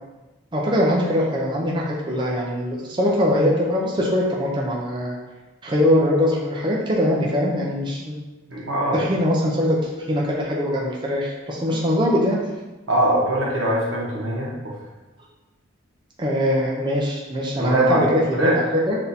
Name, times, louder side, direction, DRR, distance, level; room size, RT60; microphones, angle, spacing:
voice 1, 0.5-5.2 5.6-8.1 8.9-12.4 16.2-19.0, equal, 25° right, -3 dB, 0.5 m, -22 dB
voice 2, 8.5-9.0 12.9-14.7 17.6-18.0 18.3-18.6, right 1 dB, 85° right, -4 dB, 1.1 m, -22 dB
6.0 x 2.7 x 2.7 m, 1.1 s
head